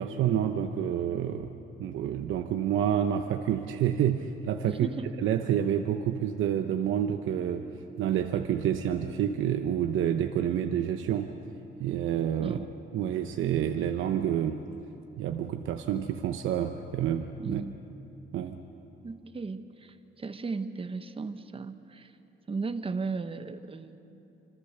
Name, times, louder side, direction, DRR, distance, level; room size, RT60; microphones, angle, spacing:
voice 1, 0.0-1.5 1.8-4.9 5.2-7.7 8.0-11.3 11.8-12.6 12.9-14.6 15.2-17.6 18.3-18.6, right 10 dB, 80° right, 6 dB, 1.0 m, -28 dB
voice 2, 4.7-5.1 12.4-12.7 17.4-17.8 19.0-22.1 22.5-24.0, right 4 dB, 30° right, 9 dB, 1.2 m, -36 dB
26.5 x 25.0 x 6.8 m, 2.9 s
cardioid pair, 90°, 20 cm